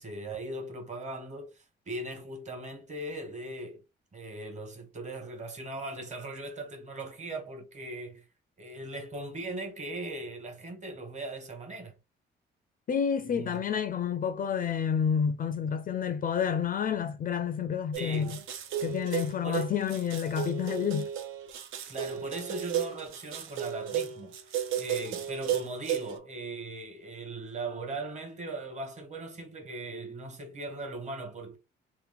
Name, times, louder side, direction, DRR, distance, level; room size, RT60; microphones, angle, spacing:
voice 1, 0.0-3.8 4.1-8.2 8.6-11.9 13.2-13.6 18.0-18.4 19.4-19.7 21.9-31.6, right 2 dB, 35° right, 1.3 m, -39 dB
voice 2, 12.9-18.3 18.8-21.1, left 7 dB, 45° left, 0.4 m, -29 dB
sound 1, 17.9-26.1, right 9 dB, 80° right, 0.6 m, -34 dB
2.9 x 2.0 x 3.4 m
cardioid pair, 90°, 20 cm